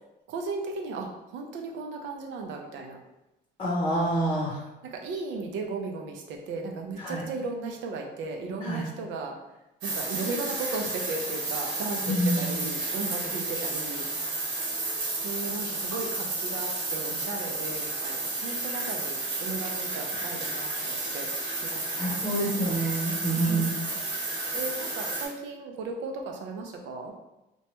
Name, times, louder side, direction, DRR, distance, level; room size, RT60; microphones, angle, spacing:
voice 1, 0.3-3.0 4.8-9.3 9.8-14.1 15.2-21.3 21.7-22.7 23.3-23.7 24.5-27.1, right 3 dB, 70° right, 2 dB, 0.6 m, -36 dB
voice 2, 3.6-4.6 7.0-7.2 8.6-8.9 12.1-12.5 21.9-23.8, right 1 dB, 25° left, -6 dB, 0.7 m, -27 dB
sound 1, 9.8-25.3, right 2 dB, 85° right, 1.1 m, -32 dB
3.0 x 2.2 x 2.9 m, 0.95 s
cardioid pair, 110°, 20 cm